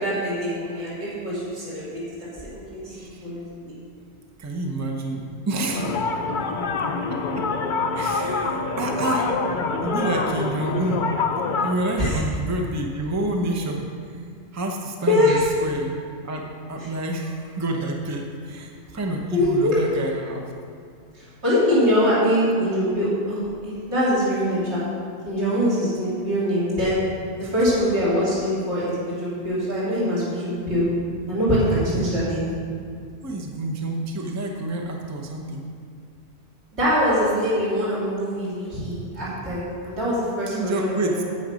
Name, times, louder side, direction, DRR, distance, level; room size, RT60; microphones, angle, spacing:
voice 1, 0.0-3.5 12.0-12.2 15.1-15.4 19.3-19.7 21.1-24.8 25.2-27.0 27.4-30.9 31.3-32.4 36.8-41.3, equal, 70° right, -11 dB, 3.2 m, -23 dB
voice 2, 2.9-3.3 4.4-6.0 6.9-7.5 7.9-9.3 9.8-11.1 11.6-13.9 14.5-15.9 16.2-20.5 27.4-27.5 31.7-32.1 33.2-35.6 40.5-41.2, right 1 dB, 15° right, 1 dB, 0.7 m, -28 dB
sound 1, 5.7-11.8, left 4 dB, 50° left, 0.7 m, -25 dB
9.1 x 7.9 x 5.1 m, 2.3 s
omnidirectional pair, 1.2 m